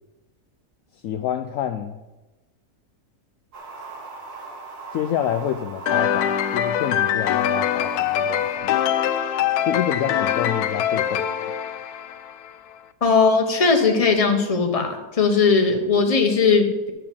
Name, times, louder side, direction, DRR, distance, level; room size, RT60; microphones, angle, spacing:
voice 1, 1.0-2.0 4.9-8.8 9.7-11.3, left 10 dB, 70° left, 9 dB, 0.9 m, -28 dB
sound 1, 3.5-8.6, right 4 dB, 85° right, 2.2 m, -39 dB
sound 2, 5.9-12.5, left 9 dB, 85° left, 1.1 m, -23 dB
voice 2, 13.0-16.9, left 4 dB, 25° left, 4 dB, 1.1 m, -19 dB
11.5 x 4.9 x 7.1 m, 1.1 s
omnidirectional pair, 1.6 m